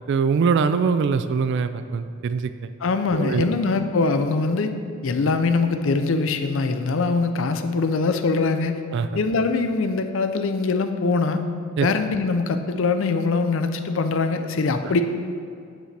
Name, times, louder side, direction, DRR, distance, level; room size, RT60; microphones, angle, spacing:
voice 1, 0.1-2.5 3.1-3.5 8.9-9.1 11.8-11.9, right 5 dB, 60° right, 11 dB, 0.3 m, -22 dB
voice 2, 2.8-4.7 5.0-8.8 9.1-11.4 11.8-15.0, left 4 dB, 65° left, 8 dB, 0.5 m, -22 dB
8.9 x 7.4 x 3.3 m, 2.4 s
head